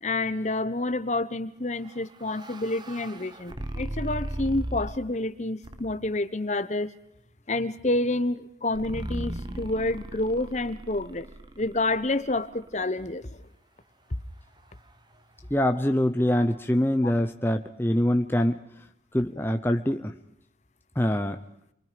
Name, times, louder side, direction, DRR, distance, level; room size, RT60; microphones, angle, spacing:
voice 1, 0.0-6.9 7.5-11.3 11.6-13.4 17.0-17.1, left 2 dB, 40° left, 13 dB, 1.2 m, -28 dB
sound 1, 1.8-5.2 5.6-6.2 8.7-12.8, right 1 dB, 25° right, 1.1 m, -37 dB
voice 2, 15.5-18.6 19.1-20.1 21.0-21.4, left 1 dB, 10° left, 6 dB, 0.9 m, -24 dB
30.0 x 23.5 x 5.2 m, 0.76 s
head